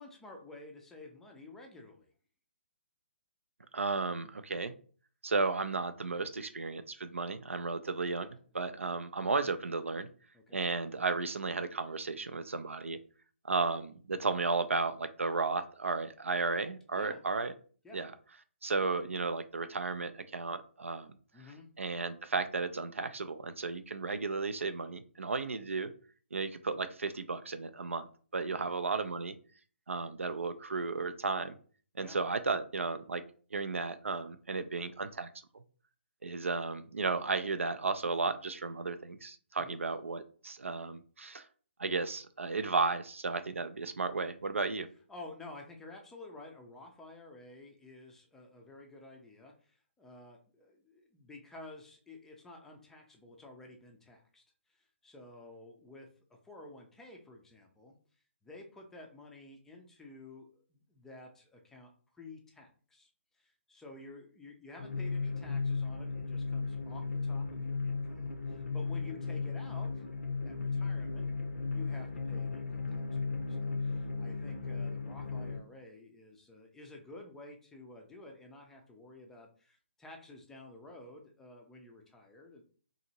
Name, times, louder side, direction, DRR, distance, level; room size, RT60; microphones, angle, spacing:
voice 1, 0.0-2.1 10.3-10.6 16.9-17.2 17.8-18.0 21.3-21.7 28.5-28.7 32.0-32.2 39.6-39.8 45.1-54.4 54.7-56.1 56.4-58.0 58.4-63.1 63.3-69.9 70.4-71.3 71.7-73.2 73.5-82.6, left 2 dB, 5° left, 1 dB, 0.4 m, -52 dB
voice 2, 3.7-4.7 5.2-8.3 8.5-10.1 10.5-13.0 13.4-17.5 17.9-18.1 18.6-21.2 21.8-25.9 26.3-28.1 28.3-29.3 29.9-31.6 31.9-33.2 33.5-35.3 36.2-41.5 41.8-44.9, right 4 dB, 75° right, 11 dB, 0.3 m, -34 dB
sound 1, 64.8-75.6, left 4 dB, 70° left, 0.5 m, -35 dB
2.8 x 2.6 x 2.7 m, 0.42 s
figure-of-eight pair, 135°, 7 cm